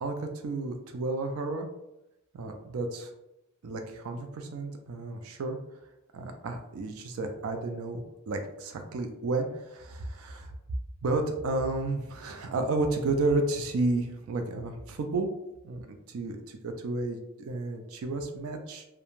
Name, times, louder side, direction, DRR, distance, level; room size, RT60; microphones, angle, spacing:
voice 1, 0.0-1.7 2.3-3.1 3.6-5.6 6.1-10.5 11.0-15.3 15.6-18.9, right 2 dB, 75° right, 5 dB, 0.4 m, -32 dB
2.4 x 2.2 x 3.0 m, 0.90 s
head